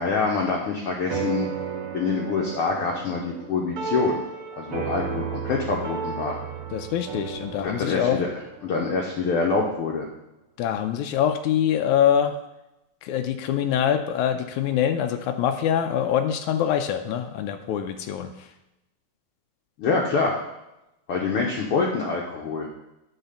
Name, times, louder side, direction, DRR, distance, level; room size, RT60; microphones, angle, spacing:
voice 1, 0.0-1.5 1.9-4.2 4.6-6.4 7.6-8.3 8.6-10.1 19.8-20.4 21.1-22.7, left 4 dB, 65° left, -1 dB, 1.5 m, -25 dB
sound 1, 1.1-9.8, right 6 dB, 60° right, 1.6 m, -34 dB
voice 2, 6.7-8.2 10.6-12.4 13.0-18.5, left 9 dB, 85° left, 7 dB, 2.0 m, -24 dB
8.9 x 4.3 x 6.8 m, 0.93 s
omnidirectional pair, 3.4 m